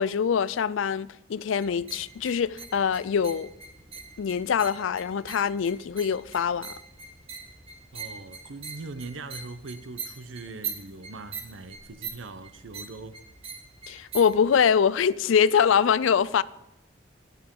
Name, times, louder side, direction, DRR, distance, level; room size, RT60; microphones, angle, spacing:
voice 1, 0.0-3.5 4.2-6.7 13.9-16.4, left 7 dB, 85° left, 0.4 m, -24 dB
sound 1, 1.6-14.6, right 5 dB, 30° right, 1.3 m, -42 dB
voice 2, 7.9-13.2, right 3 dB, 85° right, 0.7 m, -41 dB
18.5 x 6.8 x 3.8 m
head